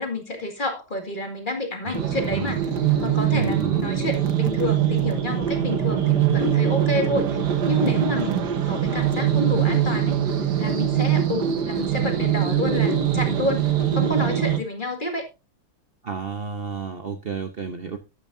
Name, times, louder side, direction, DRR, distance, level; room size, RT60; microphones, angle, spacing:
voice 1, 0.0-2.7 3.0-7.4 7.7-10.2 10.6-15.3, left 2 dB, 25° left, 4 dB, 2.1 m, -29 dB
sound 1, 1.9-14.6, right 9 dB, 55° right, 1.7 m, -22 dB
voice 2, 3.3-4.0 16.0-18.0, right 5 dB, 80° right, 7 dB, 0.5 m, -31 dB
13.0 x 8.9 x 2.7 m, 0.26 s
omnidirectional pair, 2.3 m